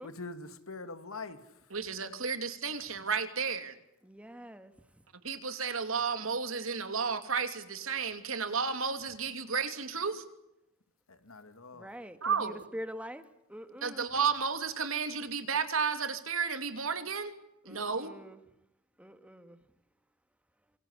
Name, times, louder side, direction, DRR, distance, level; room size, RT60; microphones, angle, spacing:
voice 1, 0.0-1.7 11.1-11.9, left 3 dB, 85° left, 2.4 m, -44 dB
voice 2, 1.7-3.7 5.2-10.2 12.2-12.6 13.8-17.3 17.6-18.1, right 5 dB, 75° right, 2.9 m, -32 dB
voice 3, 4.0-4.7 11.7-14.1 17.6-18.4 19.0-19.6, equal, 5° right, 2.0 m, -45 dB
27.0 x 24.0 x 8.2 m
head